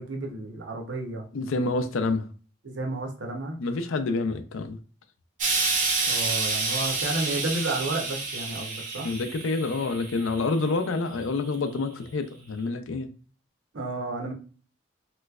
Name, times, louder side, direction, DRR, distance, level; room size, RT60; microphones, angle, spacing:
voice 1, 0.0-1.2 2.6-3.6 6.1-9.1 13.7-14.3, right 2 dB, 70° right, 0.8 m, -32 dB
voice 2, 1.3-2.3 3.6-4.8 9.0-13.1, left 3 dB, 80° left, 0.4 m, -28 dB
Explosion, 5.4-10.7 11.5-11.6, right 3 dB, 40° right, 0.6 m, -29 dB
3.1 x 3.0 x 2.3 m
head